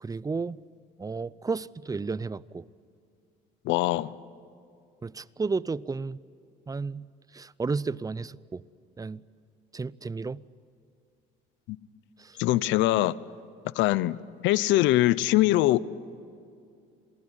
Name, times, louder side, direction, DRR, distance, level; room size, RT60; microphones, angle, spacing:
voice 1, 0.0-0.6 1.0-2.7 5.0-6.2 6.7-7.1 7.3-8.6 9.0-9.2 9.7-10.4 12.2-12.4, right 4 dB, 20° right, 0.6 m, -32 dB
voice 2, 3.6-4.1 11.7-11.8 12.4-13.2 13.8-14.2 14.4-15.8, left 16 dB, 80° left, 0.8 m, -22 dB
28.0 x 20.0 x 9.9 m
supercardioid pair, 90°, 19 cm